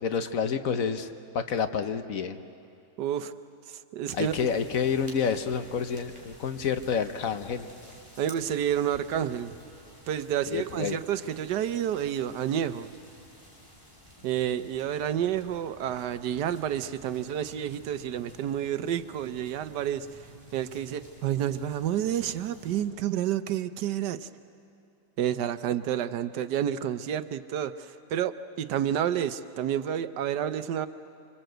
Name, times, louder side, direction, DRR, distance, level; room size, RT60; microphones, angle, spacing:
voice 1, 0.0-2.4 4.1-7.7 10.5-11.0, left 6 dB, 60° left, 9 dB, 1.3 m, -29 dB
voice 2, 3.0-3.3 3.7-4.5 8.2-9.6 10.1-12.9 14.2-24.3 25.2-30.9, right 10 dB, 85° right, 12 dB, 1.4 m, -30 dB
sound 1, 4.1-22.8, equal, 15° left, 4.1 m, -52 dB
26.0 x 25.5 x 7.9 m, 2.6 s
omnidirectional pair, 1.8 m